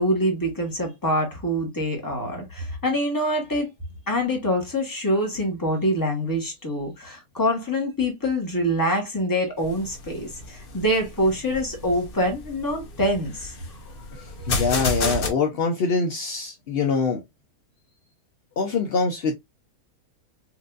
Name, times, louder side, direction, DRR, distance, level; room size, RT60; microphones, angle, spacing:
voice 1, 0.0-3.7 4.1-13.5 14.4-14.5, equal, 15° left, 1.0 m, -25 dB
sound 1, 9.6-15.3, left 3 dB, 45° left, 0.8 m, -31 dB
voice 2, 14.1-17.2 18.6-19.3, left 4 dB, 70° left, 0.5 m, -24 dB
4.4 x 2.5 x 2.3 m
omnidirectional pair, 1.7 m